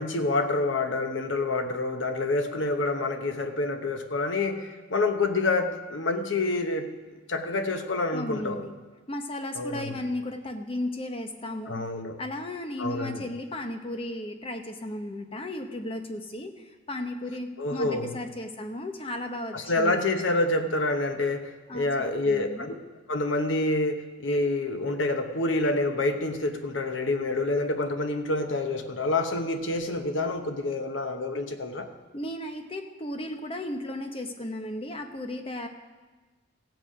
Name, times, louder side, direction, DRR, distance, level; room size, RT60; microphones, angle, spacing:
voice 1, 0.0-6.9 7.3-8.6 9.5-9.9 11.7-12.2 12.8-13.2 17.6-18.1 19.5-22.7 23.1-31.9, left 2 dB, 75° left, 6 dB, 1.0 m, -27 dB
voice 2, 8.1-8.7 9.1-11.8 12.2-20.0 21.7-22.7 32.1-35.7, left 1 dB, 30° left, 5 dB, 0.9 m, -35 dB
16.0 x 7.9 x 4.9 m, 1.3 s
head